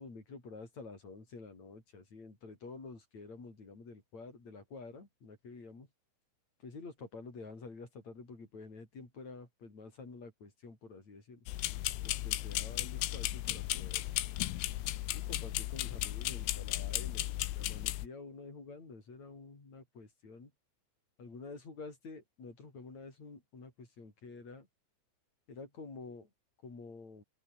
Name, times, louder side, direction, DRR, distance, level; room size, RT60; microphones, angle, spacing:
voice 1, 0.0-5.9 6.6-11.5 12.0-14.1 15.1-20.5 21.2-24.7 25.5-26.3 26.6-27.2, left 4 dB, 35° left, 7.5 m, -49 dB
sound 1, 11.5-18.1, left 16 dB, 80° left, 3.8 m, -35 dB
open air
omnidirectional pair, 5.7 m